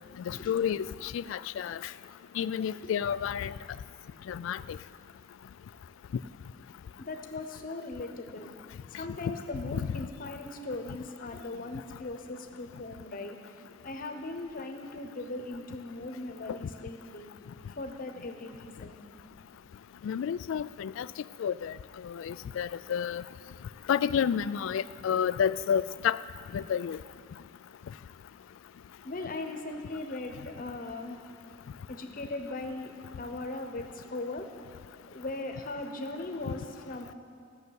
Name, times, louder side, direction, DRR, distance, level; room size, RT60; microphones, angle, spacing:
voice 1, 0.3-1.8 2.4-3.5 4.3-4.6 9.7-9.9 20.0-21.1 21.4-21.7 22.0-23.2 23.9-26.2 26.5-27.0, left 8 dB, 75° left, 17 dB, 0.3 m, -30 dB
voice 2, 7.1-8.5 8.9-13.4 13.8-17.3 17.8-19.0 29.0-31.2 31.9-32.9 33.2-34.5 35.1-37.1, left 2 dB, 45° left, 5 dB, 1.0 m, -39 dB
14.5 x 6.5 x 8.0 m, 2.3 s
head